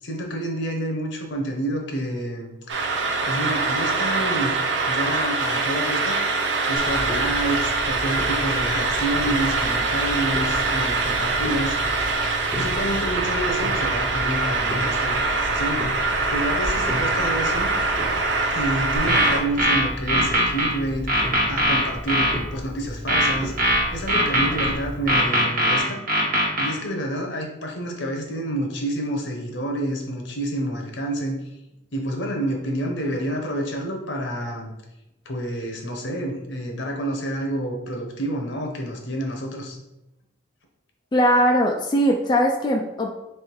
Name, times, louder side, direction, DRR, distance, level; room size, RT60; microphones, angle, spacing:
voice 1, 0.0-2.5 3.2-4.5 4.9-6.2 6.7-11.7 12.6-15.8 16.3-17.7 18.5-23.5 23.9-26.0 26.6-31.4 31.9-34.7 35.2-39.8, right 1 dB, 70° left, 1 dB, 0.9 m, -28 dB
sound 1, 2.7-19.4, right 3 dB, 70° right, 0.6 m, -24 dB
Clock, 6.8-25.2, equal, 10° right, 0.7 m, -34 dB
sound 2, 19.0-20.7 21.1-22.3 23.1-24.7 25.1-26.7, right 1 dB, 50° right, 1.2 m, -20 dB
voice 2, 41.1-43.1, equal, 25° left, 1 dB, 0.3 m, -20 dB
3.5 x 3.2 x 4.6 m, 0.92 s
head